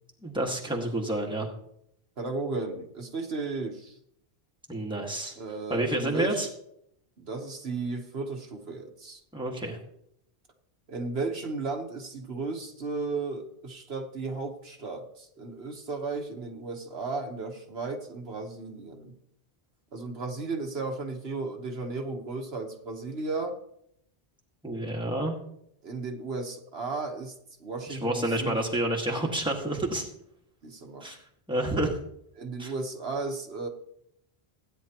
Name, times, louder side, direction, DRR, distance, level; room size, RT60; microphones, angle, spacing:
voice 1, 0.2-1.5 4.7-5.3 5.7-6.5 9.3-9.8 24.6-25.4 27.9-30.1 31.0-31.2 31.5-31.9 32.6-32.7, right 1 dB, 5° right, 0 dB, 1.8 m, -29 dB
voice 2, 2.2-4.0 5.4-6.5 7.2-9.2 10.9-19.1 19.9-23.6 25.8-28.6 30.6-31.0 32.4-33.7, right 3 dB, 70° right, 3 dB, 1.5 m, -34 dB
16.0 x 9.7 x 3.0 m, 0.74 s
omnidirectional pair, 1.1 m